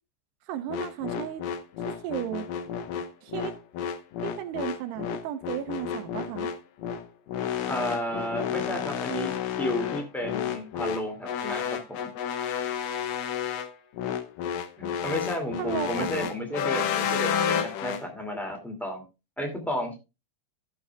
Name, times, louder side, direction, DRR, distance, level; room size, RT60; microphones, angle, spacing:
voice 1, 0.5-1.4 1.9-2.5 3.2-3.5 4.2-6.5 15.6-16.3, right 11 dB, 80° right, 2.6 m, -34 dB
sound 1, 0.7-18.0, left 8 dB, 90° left, 1.9 m, -31 dB
voice 2, 7.7-9.3 9.6-12.0 14.8-19.0 19.4-20.0, equal, ahead, 0.7 m, -32 dB
15.5 x 7.0 x 2.3 m
omnidirectional pair, 4.9 m